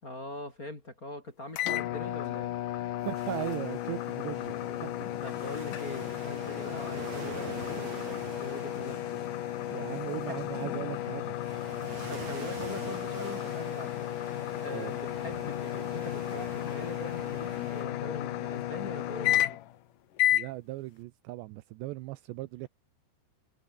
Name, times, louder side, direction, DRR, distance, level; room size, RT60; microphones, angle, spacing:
voice 1, 0.0-2.5 5.2-9.2 9.8-9.9 10.2-10.4 12.1-14.0 14.6-19.6, left 1 dB, 20° left, 3.1 m, -42 dB
sound 1, 1.5-19.8 20.2-20.5, left 13 dB, 80° left, 1.9 m, -33 dB
sound 2, 3.1-17.8, right 4 dB, 35° right, 6.3 m, -45 dB
voice 2, 3.1-4.5 4.8-4.9 9.7-11.4 14.7-14.9 20.3-22.7, right 18 dB, 80° right, 2.7 m, -38 dB
sound 3, 4.3-5.4, right 2 dB, 20° right, 7.6 m, -53 dB
omnidirectional pair, 5.5 m